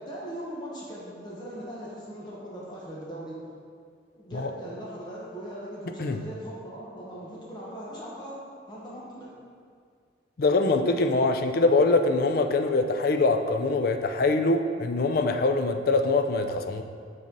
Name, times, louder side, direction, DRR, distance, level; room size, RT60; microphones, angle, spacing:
voice 1, 0.0-3.3 4.1-9.3, equal, 25° left, -6 dB, 1.1 m, -39 dB
voice 2, 10.4-16.8, left 3 dB, 50° left, 7 dB, 0.4 m, -23 dB
5.1 x 4.2 x 5.2 m, 2.1 s
head